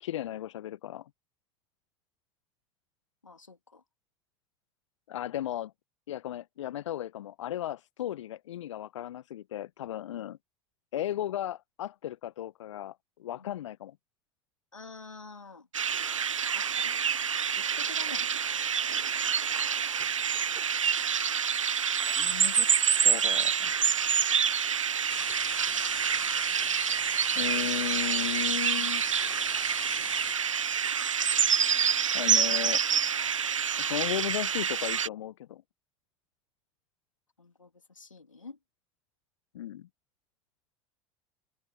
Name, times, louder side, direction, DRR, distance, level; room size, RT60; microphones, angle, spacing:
voice 1, 0.0-1.1 5.1-5.7 6.1-10.4 10.9-13.9 22.0-22.7 23.0-23.7 27.3-29.0 32.1-32.8 33.8-35.6 39.5-39.9, left 12 dB, 70° left, 0.9 m, -35 dB
voice 2, 3.2-3.8 13.4-13.5 14.7-15.7 16.5-17.0 17.6-18.4 37.4-38.6, left 4 dB, 90° left, 3.1 m, -48 dB
sound 1, 15.7-35.1, right 7 dB, 85° right, 0.4 m, -27 dB
sound 2, 18.8-29.2, right 10 dB, 35° right, 4.2 m, -61 dB
sound 3, 25.1-30.4, left 11 dB, 30° left, 0.5 m, -43 dB
open air
figure-of-eight pair, 75°, 16 cm